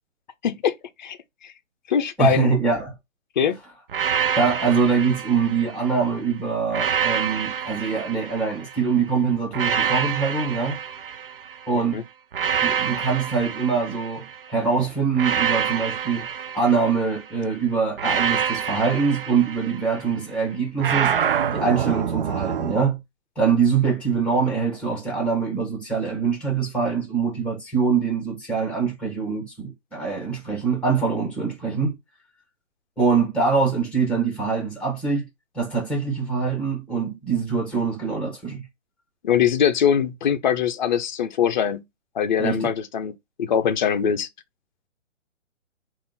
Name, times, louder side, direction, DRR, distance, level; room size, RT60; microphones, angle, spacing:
voice 1, 0.4-0.7 1.0-1.2 1.4-1.5 1.9-2.5 3.4-3.6 11.7-12.0 39.2-41.8 42.1-44.3, left 8 dB, 40° left, 0.6 m, -22 dB
voice 2, 2.2-2.9 4.4-10.8 11.7-12.0 12.6-16.3 16.5-21.1 21.5-23.0 23.3-32.0 33.0-35.3 35.5-38.7 42.4-42.7, right 5 dB, 5° left, 1.4 m, -23 dB
sound 1, 3.9-6.1 6.7-8.9 9.5-11.7 12.3-14.5 15.1-17.3 18.0-20.1 20.8-22.8, right 8 dB, 45° right, 0.4 m, -27 dB
3.5 x 2.6 x 4.0 m
figure-of-eight pair, 140°, 38 cm